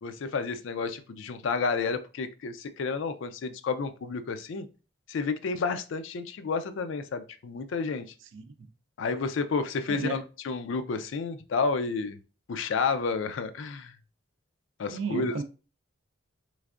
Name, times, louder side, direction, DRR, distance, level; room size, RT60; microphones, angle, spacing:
voice 1, 0.0-4.7 5.1-8.1 9.0-12.2 12.5-13.9 14.8-15.4, left 4 dB, 65° left, 0.4 m, -30 dB
voice 2, 9.9-10.2 14.9-15.4, right 4 dB, 70° right, 0.4 m, -33 dB
3.4 x 3.2 x 2.4 m
head